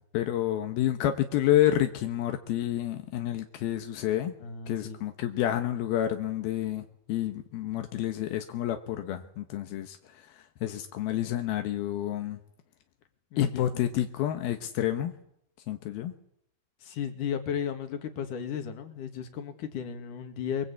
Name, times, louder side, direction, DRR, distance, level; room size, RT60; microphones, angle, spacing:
voice 1, 0.1-4.3 4.7-10.0 10.6-12.4 13.4-15.1 15.7-16.1, left 12 dB, 85° left, 6 dB, 3.1 m, -29 dB
voice 2, 4.4-5.0 13.3-13.7 16.8-20.7, left 8 dB, 60° left, 6 dB, 3.6 m, -34 dB
24.0 x 23.0 x 8.5 m, 0.75 s
omnidirectional pair, 4.2 m